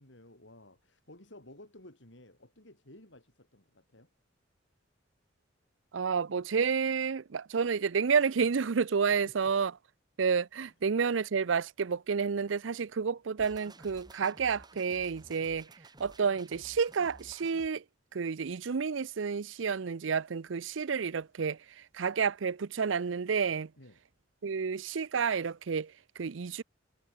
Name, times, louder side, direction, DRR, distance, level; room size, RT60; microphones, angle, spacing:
voice 1, 0.0-4.1 9.1-9.5 23.8-24.0, left 1 dB, 70° left, 6.0 m, -54 dB
voice 2, 5.9-9.7 10.2-15.7 16.0-17.8 18.1-23.7 24.4-26.6, right 6 dB, 80° right, 0.6 m, -30 dB
sound 1, 13.4-17.7, right 2 dB, 20° right, 5.7 m, -54 dB
head